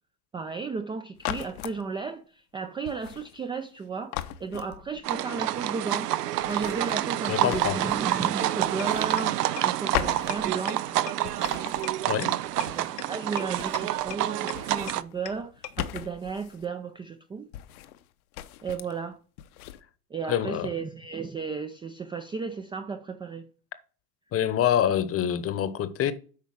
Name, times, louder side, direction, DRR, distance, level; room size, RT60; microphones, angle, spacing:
voice 1, 0.3-4.1 4.4-6.1 6.4-11.8 12.7-17.5 18.6-19.2 20.1-23.5, right 5 dB, 10° right, 0.4 m, -34 dB
sound 1, 1.2-1.8 2.8-3.8 4.1-5.2 6.4-8.3 8.6-9.7 9.9-10.9 11.2-13.0 13.3-14.2 14.5-16.7 17.5-18.1 18.3-19.0 19.4-19.8, left 13 dB, 65° left, 0.9 m, -38 dB
sound 2, 5.0-15.0, right 13 dB, 85° right, 0.6 m, -28 dB
voice 2, 7.3-7.8 12.1-12.3 20.3-20.7 24.3-26.1, left 10 dB, 30° left, 1.0 m, -25 dB
sound 3, 8.8-8.9 9.2-9.3 9.6-9.7 9.9-10.0 10.3-10.4 10.7-10.8 11.1-11.2 11.4-11.5 11.8-11.9 12.2-12.3 12.6-12.7 13.0-13.1 13.4-13.5 13.7-13.8 14.1-14.2 14.5-14.6 14.9-15.0 15.3-15.4 15.6-15.7, left 11 dB, 85° left, 1.2 m, -36 dB
8.5 x 5.3 x 4.8 m
hypercardioid pair, 90°, 46 cm